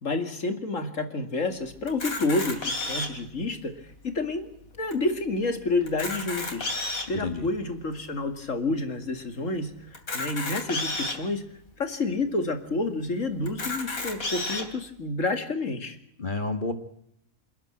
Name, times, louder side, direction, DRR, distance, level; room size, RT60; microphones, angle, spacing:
voice 1, 0.0-3.7 4.0-4.5 4.8-6.7 7.1-9.7 10.1-11.4 11.8-16.0, left 2 dB, 65° left, 8 dB, 2.6 m, -29 dB
Camera, 1.9-3.3 3.9-4.0 4.2-4.4 4.9-5.0 5.8-7.2 7.8-7.9 9.9-11.2 11.9-12.0 12.3-12.4 13.5-14.6, left 2 dB, 80° left, 3.6 m, -31 dB
voice 2, 7.1-7.5 16.2-16.7, left 3 dB, 35° left, 9 dB, 1.7 m, -30 dB
28.0 x 10.5 x 8.9 m, 0.73 s
omnidirectional pair, 1.5 m